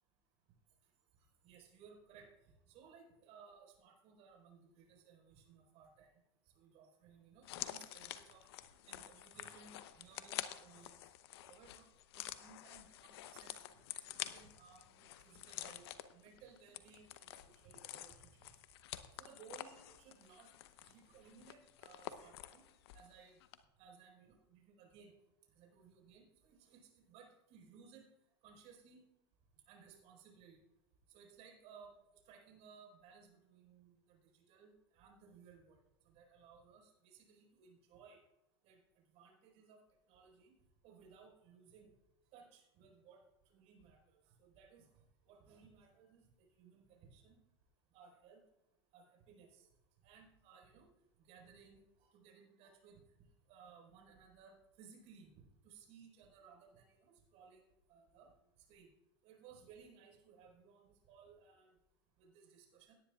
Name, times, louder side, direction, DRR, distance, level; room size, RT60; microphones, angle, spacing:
voice 1, 1.4-2.3 2.7-6.1 6.6-8.4 8.9-10.9 11.5-11.8 12.1-13.7 14.3-15.8 16.1-18.2 19.2-20.5 20.8-22.6 22.9-23.4 23.8-25.1 25.6-26.8 27.1-28.0 28.4-29.0 29.7-30.6 31.1-31.9 32.3-34.2 34.5-35.7 36.1-38.2 38.6-38.8 39.1-39.8 40.1-40.5 40.8-41.9 42.3-43.2 43.5-44.0 44.5-44.8 45.3-46.2 46.6-47.4 47.9-48.4 48.9-49.6 50.0-50.9 51.3-51.8 52.1-53.0 53.5-55.3 55.6-57.0 57.3-57.6 57.9-58.3 58.7-58.9 59.2-61.7 62.2-62.9, right 6 dB, 50° right, 1 dB, 4.7 m, -61 dB
sound 1, 7.4-23.1 23.4-23.6, left 13 dB, 65° left, 0.8 m, -49 dB
17.5 x 10.0 x 2.4 m, 0.90 s
hypercardioid pair, 105°, 14 cm